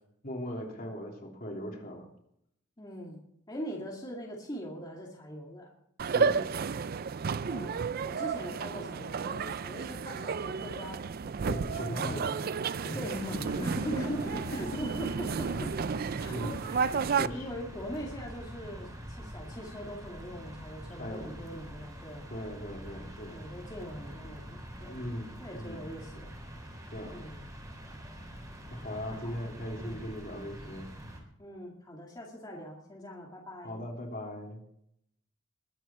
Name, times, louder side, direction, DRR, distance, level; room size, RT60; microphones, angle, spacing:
voice 1, 0.2-2.1 6.0-6.5 11.4-12.4 12.8-13.0 13.9-14.2 14.5-14.8 16.3-16.6 17.1-17.5 21.0-21.3 22.3-23.4 24.9-25.9 26.9-27.2 28.7-30.9 33.6-34.6, equal, 45° left, 0 dB, 3.4 m, -38 dB
voice 2, 2.8-3.2 3.5-5.7 7.4-11.0 11.8-15.7 16.1-17.0 17.3-22.2 23.3-25.0 25.4-26.3 27.1-27.4 29.0-29.4 29.7-30.0 31.4-33.8, equal, 20° left, -3 dB, 2.4 m, -42 dB
sound 1, 6.0-17.3, right 5 dB, 50° right, 0.4 m, -32 dB
sound 2, 13.0-31.2, equal, 15° right, 3.4 m, -45 dB
21.5 x 9.1 x 4.5 m, 0.73 s
head